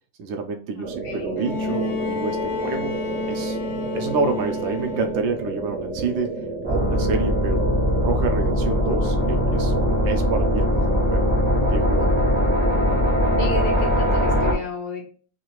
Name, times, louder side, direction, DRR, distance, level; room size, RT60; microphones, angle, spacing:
voice 1, 0.2-3.0 3.3-3.6 3.9-7.6 8.0-9.7 10.0-11.3 11.7-12.4, right 4 dB, 75° right, 5 dB, 1.2 m, -28 dB
voice 2, 0.7-1.3 13.4-15.1, left 4 dB, 65° left, 2 dB, 1.4 m, -32 dB
sound 1, 0.8-14.5, right 3 dB, 60° right, 0.8 m, -32 dB
Bowed string instrument, 1.4-5.4 6.6-6.7, left 3 dB, 90° left, 0.7 m, -30 dB
sound 2, 6.6-14.5, equal, 10° left, 0.5 m, -21 dB
3.7 x 2.4 x 2.9 m, 0.41 s
omnidirectional pair, 2.2 m